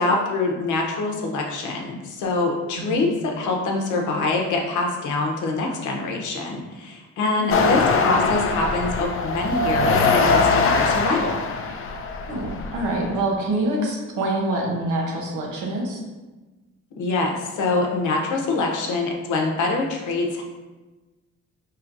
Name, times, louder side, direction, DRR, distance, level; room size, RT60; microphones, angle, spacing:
voice 1, 0.0-11.4 17.0-20.4, left 3 dB, 80° left, 1 dB, 0.8 m, -25 dB
voice 2, 2.8-3.1 7.5-7.9 12.3-16.0, right 1 dB, 85° right, -1 dB, 0.9 m, -26 dB
sound 1, 7.5-13.2, left 4 dB, 45° left, 0.4 m, -22 dB
4.5 x 3.0 x 2.5 m, 1.2 s
cardioid pair, 90°, 30 cm